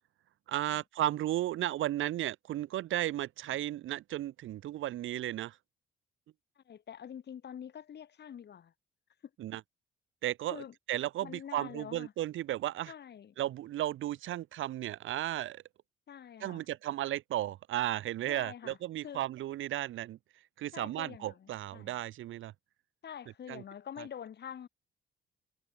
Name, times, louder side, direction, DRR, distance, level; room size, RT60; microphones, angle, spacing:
voice 1, 0.5-5.6 9.4-9.6 10.2-12.9 13.4-15.6 16.4-20.2 20.6-22.5 23.5-23.6, right 14 dB, 80° right, 1.8 m, -34 dB
voice 2, 6.6-8.7 10.5-10.7 11.2-12.1 12.9-13.4 16.1-16.7 18.3-18.8 19.0-19.2 20.7-22.0 23.0-24.7, left 8 dB, 60° left, 5.8 m, -46 dB
cardioid pair, 90°, 20 cm